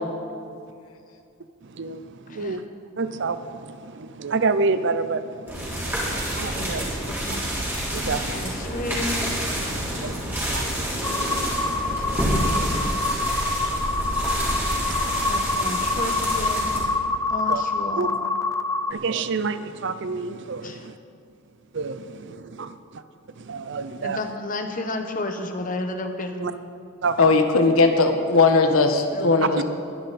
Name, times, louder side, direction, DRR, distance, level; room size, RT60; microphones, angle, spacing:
voice 1, 1.7-2.6 3.0-5.9 6.3-6.9 7.9-8.4 9.9-12.3 13.7-15.3 17.5-17.6 18.0-18.1 18.9-20.9 21.7-23.0 23.4-24.2 26.4-26.5 27.0-27.4 29.6-29.7, right 4 dB, 55° right, 12 dB, 0.6 m, -29 dB
voice 2, 2.3-2.6 5.6-5.7 6.5-7.5 8.0-9.3 12.0-12.9 15.3-16.7 17.3-18.2 20.6-20.9 24.0-26.5 29.1-29.6, left 2 dB, 40° left, 6 dB, 1.1 m, -32 dB
sound 1, 5.5-16.8, equal, 10° right, 3.3 m, -28 dB
sound 2, 11.0-18.9, left 2 dB, 15° left, 0.5 m, -26 dB
voice 3, 27.2-29.6, left 3 dB, 80° left, 5 dB, 1.3 m, -18 dB
22.0 x 10.5 x 4.2 m, 2.4 s
head